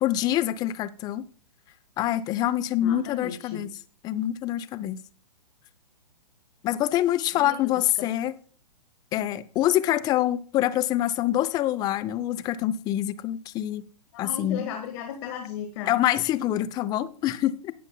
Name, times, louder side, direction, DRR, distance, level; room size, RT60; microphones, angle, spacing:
voice 1, 0.0-1.2 2.0-3.7 4.0-5.0 6.6-8.3 9.1-13.8 14.2-14.7 15.9-17.7, left 13 dB, 20° left, 0.5 m, -25 dB
voice 2, 2.8-3.6 7.3-8.1 14.1-16.0, left 8 dB, 40° left, 1.4 m, -36 dB
18.5 x 6.8 x 2.2 m
figure-of-eight pair, 120°, 21 cm